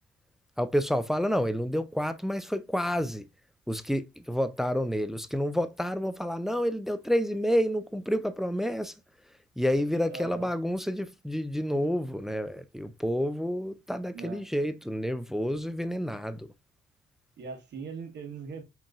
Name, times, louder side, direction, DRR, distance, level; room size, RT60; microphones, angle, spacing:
voice 1, 0.6-3.2 3.7-8.9 9.6-16.5, equal, ahead, 0.3 m, -29 dB
voice 2, 10.1-10.5 14.1-14.4 17.4-18.6, right 5 dB, 60° right, 1.3 m, -40 dB
5.1 x 3.0 x 2.4 m
cardioid pair, 90°, 20 cm